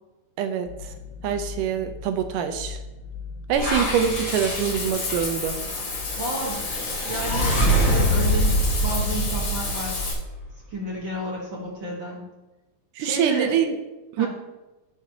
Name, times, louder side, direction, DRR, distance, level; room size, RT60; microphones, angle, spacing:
voice 1, 0.4-0.9 1.2-2.8 3.5-5.6 13.0-13.8 14.2-14.3, right 8 dB, 85° right, 7 dB, 1.9 m, -24 dB
sound 1, 0.7-7.8, left 5 dB, 75° left, 2.4 m, -40 dB
Water / Bathtub (filling or washing), 3.5-10.1, left 3 dB, 50° left, 3.7 m, -30 dB
voice 2, 6.2-6.6 7.0-10.2 10.7-12.2 13.0-13.5 14.2-14.3, right 1 dB, 55° right, -3 dB, 1.3 m, -31 dB
sound 2, 6.3-10.5, equal, 35° left, 1.1 m, -23 dB
16.0 x 5.9 x 2.8 m, 1.1 s
omnidirectional pair, 4.2 m